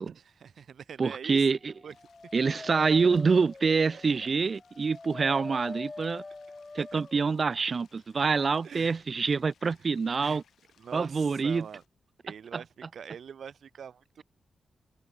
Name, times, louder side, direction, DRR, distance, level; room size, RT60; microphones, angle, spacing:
voice 1, 0.1-1.5 1.8-1.9 2.4-2.5 6.8-7.0 8.6-9.0 10.2-10.4 10.8-11.8 12.2-14.2, right 7 dB, 60° right, 1.0 m, -44 dB
voice 2, 1.0-1.7 2.3-6.2 6.7-10.4 10.9-11.7 12.5-12.6, right 5 dB, 35° right, 0.6 m, -26 dB
Dog, 1.7-7.3, left 3 dB, 20° left, 3.3 m, -44 dB
sound 1, 1.9-11.9, left 8 dB, 75° left, 7.5 m, -67 dB
wide cardioid pair, 165°, 0 cm